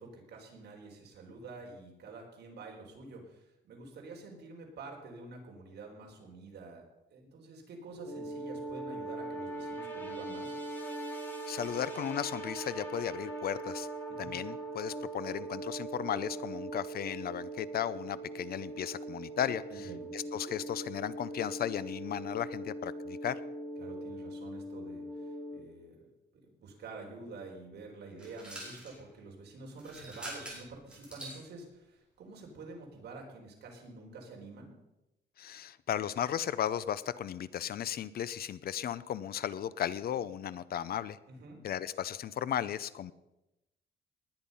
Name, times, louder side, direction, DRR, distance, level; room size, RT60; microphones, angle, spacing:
voice 1, 0.0-6.8 7.1-10.6 14.1-14.3 19.7-20.1 23.8-26.0 26.6-34.7 41.3-41.6, right 3 dB, 65° right, 0 dB, 4.4 m, -48 dB
sound 1, 7.9-25.6, right 2 dB, 10° left, 4.1 m, -41 dB
voice 2, 11.5-13.9 14.2-23.4 35.4-41.2 41.6-43.1, left 10 dB, 55° left, 16 dB, 0.6 m, -35 dB
sound 2, 28.2-29.0 29.7-31.4, right 1 dB, 5° right, 5.2 m, -45 dB
19.5 x 10.5 x 5.6 m, 0.94 s
cardioid pair, 160°, 18 cm